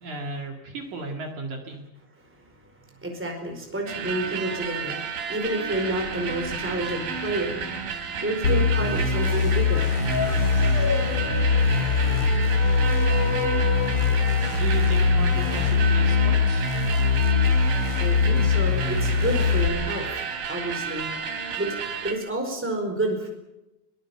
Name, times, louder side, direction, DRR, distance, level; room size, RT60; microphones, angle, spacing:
voice 1, 0.0-1.8 14.5-16.7, right 2 dB, 60° right, 3 dB, 3.5 m, -35 dB
voice 2, 3.0-7.6 8.2-9.9 18.0-20.1 20.5-21.1 21.6-21.7 22.0-23.3, right 1 dB, 5° right, 2 dB, 4.4 m, -29 dB
sound 1, 3.9-22.1, right 5 dB, 85° right, 4.5 m, -32 dB
sound 2, 8.4-19.7, left 5 dB, 45° left, 2.7 m, -22 dB
sound 3, 9.6-18.1, left 6 dB, 80° left, 3.5 m, -34 dB
22.5 x 20.5 x 7.2 m, 0.95 s
omnidirectional pair, 4.1 m